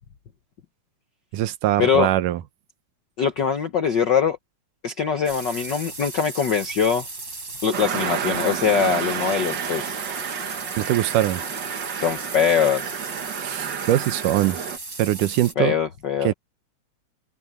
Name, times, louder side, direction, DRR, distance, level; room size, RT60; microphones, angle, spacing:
voice 1, 1.3-2.4 10.8-11.4 13.4-14.6 15.0-15.7 16.2-16.3, right 14 dB, 85° right, 2.5 m, -22 dB
voice 2, 3.2-4.4 4.8-7.1 7.6-10.0 12.0-13.0 15.6-16.3, left 7 dB, 75° left, 1.0 m, -22 dB
sound 1, 5.2-15.5, right 3 dB, 30° right, 5.1 m, -36 dB
sound 2, 7.7-14.8, right 8 dB, 55° right, 1.2 m, -30 dB
omnidirectional pair, 3.6 m